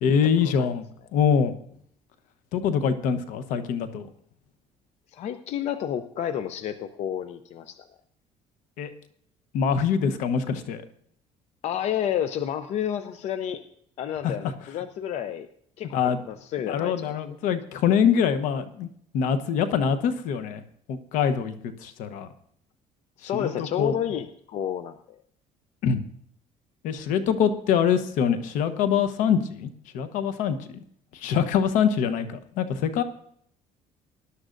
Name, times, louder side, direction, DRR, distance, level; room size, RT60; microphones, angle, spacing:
voice 1, 0.0-0.9 1.1-1.5 2.5-4.1 8.8-8.9 9.5-10.8 14.2-14.3 15.9-16.2 16.7-18.9 19.1-20.6 20.9-22.3 23.3-23.9 25.8-26.0 26.8-30.6 31.1-33.0, left 7 dB, 80° left, 11 dB, 1.0 m, -24 dB
voice 2, 5.1-7.8 11.6-13.6 14.0-15.5 15.8-17.2 23.2-25.2, left 9 dB, 55° left, 10 dB, 0.6 m, -30 dB
19.5 x 11.5 x 2.6 m, 0.65 s
cardioid pair, 135°, 13 cm